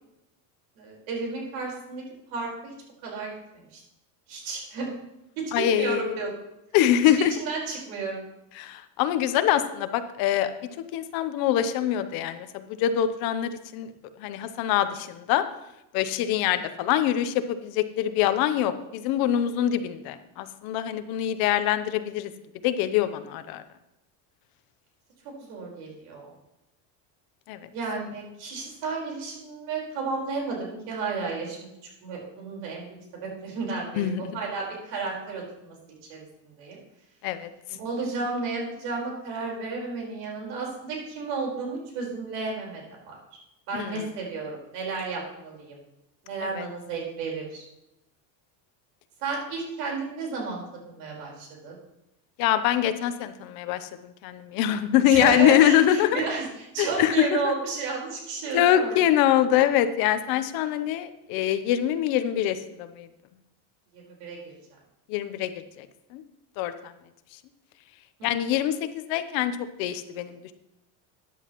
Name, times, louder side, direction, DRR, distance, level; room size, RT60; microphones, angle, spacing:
voice 1, 0.8-2.0 2.3-2.7 3.0-3.8 4.3-4.9 5.4-6.3 7.1-8.2 25.4-26.3 27.7-31.6 32.0-32.9 33.2-35.7 36.1-36.8 37.8-43.2 43.7-45.8 46.2-47.6 49.2-51.7 55.1-58.9 63.9-64.4, right 4 dB, 75° right, -1 dB, 4.6 m, -32 dB
voice 2, 5.5-6.2 6.7-7.3 8.6-10.5 10.9-13.9 14.2-15.4 15.9-22.3 22.6-23.6 27.5-27.6 33.9-34.4 37.2-37.5 43.7-44.0 46.4-46.7 52.4-56.3 56.8-57.5 58.5-63.1 65.1-65.5 65.8-65.9 66.1-66.2 66.6-66.9 68.2-70.5, left 11 dB, 55° left, 11 dB, 0.8 m, -24 dB
14.0 x 10.0 x 3.0 m, 0.89 s
cardioid pair, 175°, 43 cm